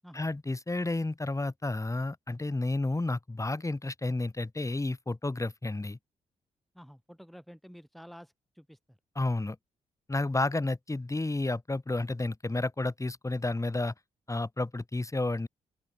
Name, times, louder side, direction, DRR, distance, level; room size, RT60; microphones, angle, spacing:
voice 1, 0.1-6.0 9.2-9.6 10.1-13.9 14.3-15.5, left 2 dB, 20° left, 3.4 m, -31 dB
voice 2, 6.7-9.0, equal, ahead, 7.5 m, -51 dB
open air
supercardioid pair, 45°, 15 cm